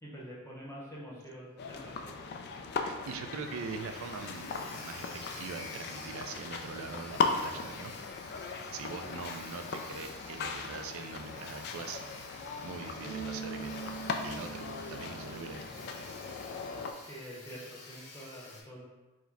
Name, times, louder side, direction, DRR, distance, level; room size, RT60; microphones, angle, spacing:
voice 1, 0.0-2.1 9.0-9.1 17.0-18.9, equal, 10° left, -6 dB, 0.8 m, -46 dB
sound 1, 1.6-16.9, left 5 dB, 50° left, 0.3 m, -38 dB
Sawing, 1.7-1.8 2.1-2.2 2.6-2.7 2.9-18.6, left 2 dB, 80° left, 1.5 m, -50 dB
voice 2, 2.8-7.9 8.7-12.0 12.3-13.8 14.2-15.6, right 4 dB, 65° right, 7 dB, 0.4 m, -42 dB
Bass guitar, 13.0-16.2, right 6 dB, 25° right, 0.9 m, -44 dB
4.9 x 2.1 x 4.0 m, 1.2 s
head